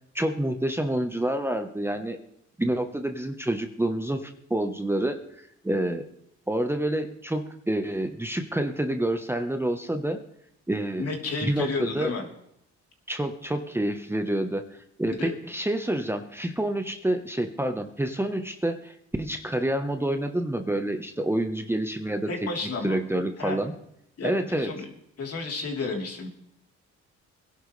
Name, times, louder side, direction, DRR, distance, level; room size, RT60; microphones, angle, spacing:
voice 1, 0.1-2.2 2.6-6.1 6.5-10.2 10.7-11.1 11.4-12.1 13.1-22.3 22.8-23.7 24.2-24.7, right 1 dB, 10° right, 6 dB, 1.1 m, -28 dB
voice 2, 11.0-12.3 15.2-15.3 22.3-23.0 23.4-23.6 24.2-24.9 25.2-26.3, left 3 dB, 50° left, 1 dB, 3.6 m, -31 dB
22.0 x 11.0 x 3.3 m, 0.74 s
cardioid pair, 90°, 30 cm